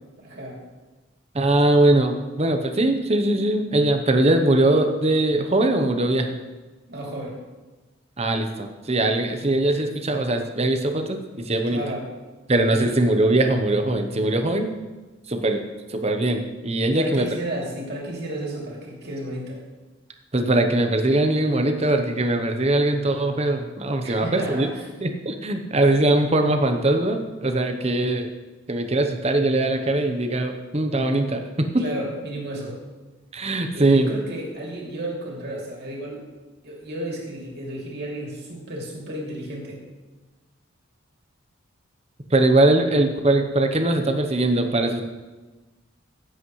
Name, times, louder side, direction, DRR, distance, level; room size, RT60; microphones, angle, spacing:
voice 1, 0.2-0.6 6.9-7.4 11.7-12.1 12.7-12.9 16.8-19.6 24.0-24.8 31.8-32.8 33.7-36.2 36.6-39.8, right 1 dB, 50° right, -2 dB, 2.8 m, -32 dB
voice 2, 1.3-6.4 8.2-11.8 12.5-14.7 15.3-15.6 15.9-17.3 20.3-24.7 25.0-28.3 28.7-31.8 33.3-34.1 42.3-45.0, right 2 dB, 30° right, 6 dB, 0.9 m, -21 dB
16.0 x 8.1 x 3.2 m, 1.2 s
head